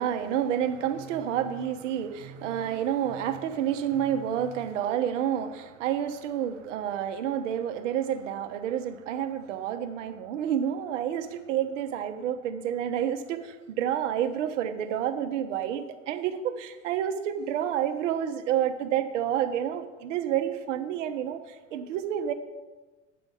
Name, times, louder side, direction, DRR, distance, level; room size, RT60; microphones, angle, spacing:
voice 1, 0.0-22.3, right 9 dB, 75° right, 9 dB, 0.9 m, -29 dB
8.9 x 5.2 x 6.3 m, 1.2 s
hypercardioid pair, 75°, 37 cm